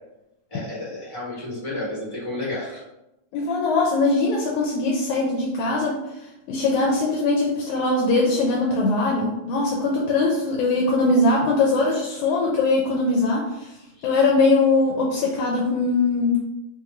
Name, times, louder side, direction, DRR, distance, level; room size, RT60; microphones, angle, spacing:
voice 1, 0.5-2.8 13.9-14.1, left 2 dB, 30° left, -8 dB, 0.9 m, -31 dB
voice 2, 3.3-6.0 6.5-13.7 14.0-16.4, left 3 dB, 80° left, -2 dB, 2.0 m, -21 dB
5.5 x 2.6 x 2.9 m, 0.92 s
omnidirectional pair, 3.4 m